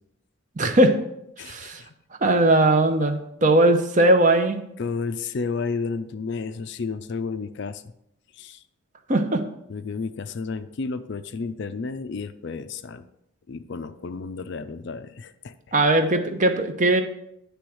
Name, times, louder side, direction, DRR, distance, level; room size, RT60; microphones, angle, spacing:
voice 1, 0.6-1.0 1.4-1.8 2.2-4.6 9.1-9.4 15.7-17.0, right 1 dB, 35° right, 7 dB, 0.7 m, -19 dB
voice 2, 1.4-1.9 4.8-7.8 8.3-8.6 9.7-13.1 13.5-15.5, left 4 dB, 50° left, 11 dB, 0.4 m, -32 dB
10.0 x 3.5 x 6.3 m, 0.79 s
head